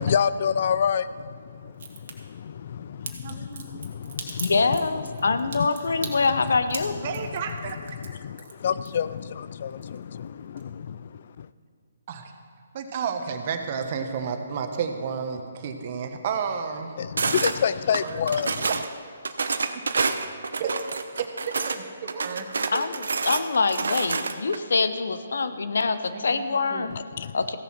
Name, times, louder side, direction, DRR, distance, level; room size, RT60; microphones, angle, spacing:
voice 1, 0.0-3.1 3.7-4.8 5.0-5.3 5.5-5.7 6.2-6.5 6.9-7.3 7.9-11.5 17.0-18.7 26.9-27.4, left 7 dB, 55° left, 0.3 m, -29 dB
Crack, 1.7-2.1 3.0-9.3 9.6-10.3 10.6-10.7, right 6 dB, 60° right, 1.8 m, -38 dB
voice 2, 3.2-3.8 6.0-6.1 7.0-8.0 12.1-12.3 12.7-17.0 18.0-18.2 18.6-18.7 19.9-20.0 20.6-20.7 21.5-22.9 26.1-26.4 26.7-26.9, right 6 dB, 45° right, 1.2 m, -32 dB
voice 3, 4.4-7.0 22.7-27.0 27.3-27.6, left 4 dB, 75° left, 0.8 m, -25 dB
sound 1, 17.2-17.6 17.9-18.9 19.2-21.8 22.1-24.6, right 4 dB, 80° right, 0.7 m, -28 dB
15.5 x 7.1 x 6.0 m
hypercardioid pair, 150°, 0 cm